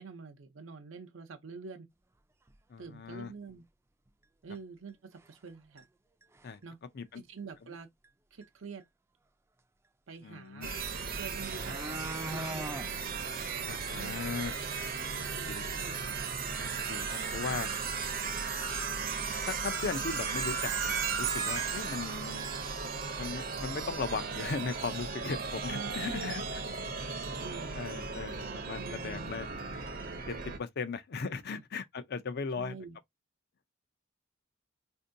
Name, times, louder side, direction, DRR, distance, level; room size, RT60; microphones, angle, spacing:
voice 1, 0.0-1.9 2.8-3.6 4.4-5.9 6.6-6.8 7.1-7.9 8.3-8.8 10.1-10.7 11.2-11.9 12.3-12.6 13.9-14.5 15.1-16.0 17.5-17.6 25.7-27.8 28.8-29.3 31.5-31.6 32.6-33.0, right 5 dB, 85° right, 0.6 m, -46 dB
sound 1, 2.5-2.6 3.1-3.2 3.5-3.6 4.5-4.6 5.2-5.5 5.8-5.9 6.2-6.6 8.0-8.1 8.4-8.5 10.8-10.9 11.2-12.9 13.3-13.4 13.7-13.8 14.2-14.3 14.7-14.8 17.6-17.7 18.0-18.1 18.9-19.0 19.4-19.7 19.9-20.7 21.0-21.1, right 1 dB, 15° right, 0.3 m, -42 dB
voice 2, 2.7-3.3 6.4-6.6 6.9-7.2 10.2-10.7 13.7-14.5 15.5-15.9 16.9-17.7 19.5-22.5 22.8-22.9 23.2-26.4 27.7-29.5 30.3-32.7, left 4 dB, 55° left, 0.5 m, -37 dB
sound 2, 10.6-30.6, right 5 dB, 50° right, 0.6 m, -36 dB
4.4 x 2.6 x 2.6 m
head